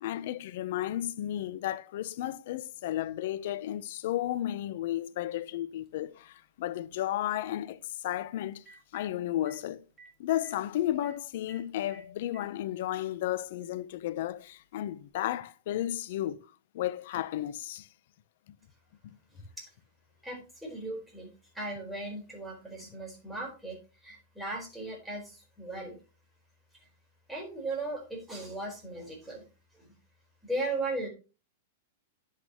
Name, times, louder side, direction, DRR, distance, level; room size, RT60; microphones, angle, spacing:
voice 1, 0.0-8.6 8.9-9.8 10.2-16.4 16.7-17.9 19.0-19.1, left 13 dB, 65° left, 0.7 m, -33 dB
Telephone, 5.9-6.0 8.1-8.2 8.5-9.0 9.5-9.6 10.0-10.1 10.4-10.5 11.0-11.1 11.5-11.6 11.9-12.5 13.5-13.6 15.0-15.1, right 4 dB, 20° right, 2.3 m, -53 dB
voice 2, 20.2-21.3 21.5-23.8 24.0-26.0 27.3-29.5 29.7-29.9 30.4-31.1, right 2 dB, 5° right, 4.3 m, -37 dB
10.5 x 8.4 x 2.9 m
hypercardioid pair, 130°, 0 cm